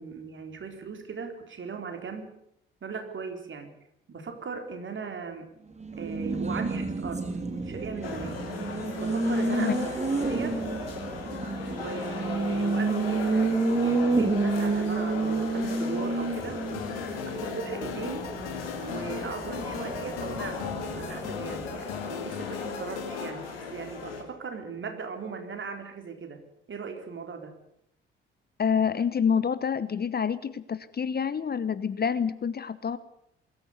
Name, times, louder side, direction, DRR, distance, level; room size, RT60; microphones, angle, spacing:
voice 1, 0.0-2.3 2.8-3.7 4.1-5.5 6.0-7.3 7.5-8.5 9.0-10.6 11.7-16.6 17.3-18.3 18.8-26.4 26.7-27.5, right 5 dB, 40° right, 6 dB, 4.2 m, -38 dB
Race car auto racing, 5.7-22.0, right 3 dB, 25° right, 3.7 m, -30 dB
sound 1, 8.0-24.2, left 4 dB, 80° left, 2.9 m, -37 dB
voice 2, 9.5-9.9 28.6-33.0, left 7 dB, 35° left, 15 dB, 1.1 m, -27 dB
sound 2, 16.7-23.3, left 10 dB, 65° left, 2.0 m, -40 dB
22.0 x 14.0 x 9.6 m, 0.76 s
figure-of-eight pair, 45°, 29 cm